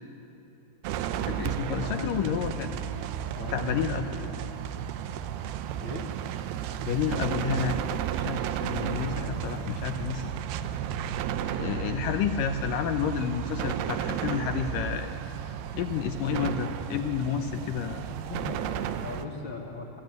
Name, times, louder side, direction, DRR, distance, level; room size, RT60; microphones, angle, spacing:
sound 1, 0.8-19.3, right 9 dB, 85° right, 2.8 m, -33 dB
voice 1, 1.2-2.7 3.5-4.1 6.8-7.8 8.2-10.3 11.6-15.1 15.7-18.0, left 8 dB, 75° left, 7 dB, 2.1 m, -30 dB
voice 2, 1.8-2.7 3.3-4.3 5.8-6.1 8.7-9.9 18.3-20.0, left 3 dB, 40° left, 0 dB, 1.9 m, -39 dB
24.0 x 15.5 x 9.4 m, 2.8 s
omnidirectional pair, 4.6 m